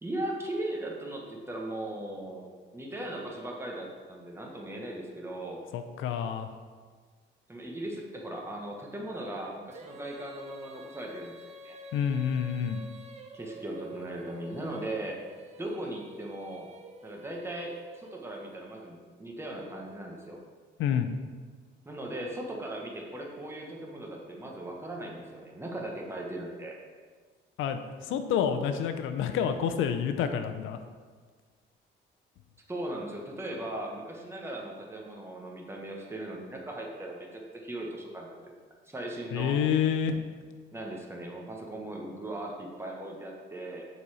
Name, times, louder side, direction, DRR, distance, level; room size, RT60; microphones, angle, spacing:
voice 1, 0.0-2.5 2.7-5.6 7.5-11.4 11.6-11.8 13.3-15.2 15.6-16.7 17.0-20.4 21.8-26.8 32.7-38.5 38.8-39.6 40.7-43.9, right 1 dB, 10° right, -1 dB, 1.2 m, -38 dB
voice 2, 5.7-6.5 11.9-12.8 20.8-21.1 27.6-30.8 39.3-40.2, left 8 dB, 90° left, 8 dB, 0.6 m, -28 dB
Female singing, 9.7-18.9, right 1 dB, 35° right, 0.7 m, -48 dB
7.0 x 4.2 x 4.9 m, 1.5 s
cardioid pair, 90°, 20 cm